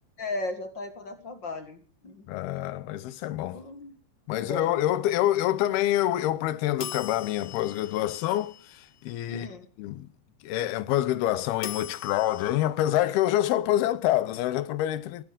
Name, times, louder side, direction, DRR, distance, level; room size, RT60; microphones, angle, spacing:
voice 1, 0.2-1.8 2.0-2.3 3.5-3.9 4.4-4.7 9.3-9.7, left 2 dB, 40° left, 1.8 m, -36 dB
voice 2, 2.3-3.6 4.3-9.5 9.8-10.1 10.4-15.2, left 13 dB, 85° left, 3.0 m, -26 dB
sound 1, 6.8-9.0 11.6-12.5, left 9 dB, 65° left, 1.5 m, -41 dB
19.5 x 14.0 x 5.3 m
omnidirectional pair, 4.4 m